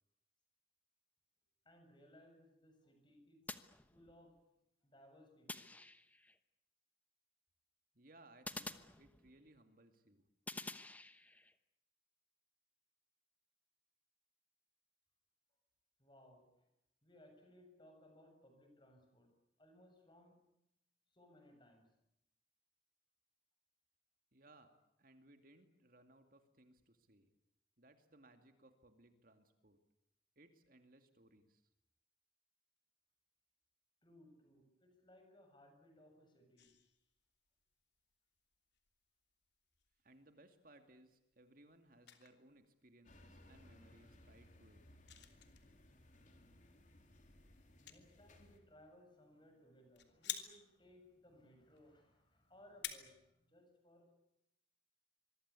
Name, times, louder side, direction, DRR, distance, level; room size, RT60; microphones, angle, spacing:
voice 1, 1.7-4.5 4.8-5.9 16.0-16.7 17.0-20.4 21.1-21.9 34.0-36.7 47.1-47.2 47.8-54.2, left 1 dB, 25° left, 5 dB, 7.3 m, -64 dB
sound 1, 3.5-4.4 5.5-6.4 8.5-9.6 10.5-11.5, left 2 dB, 10° left, 1.0 m, -49 dB
voice 2, 7.9-10.2 24.3-24.7 25.0-27.3 27.8-29.8 30.4-31.6 40.0-44.8, right 1 dB, 45° right, 7 dB, 2.5 m, -65 dB
sound 2, 36.6-53.0, left 11 dB, 65° left, 3.1 m, -54 dB
sound 3, 43.0-48.6, left 1 dB, 40° left, 3.7 m, -63 dB
25.5 x 23.0 x 8.5 m, 0.83 s
head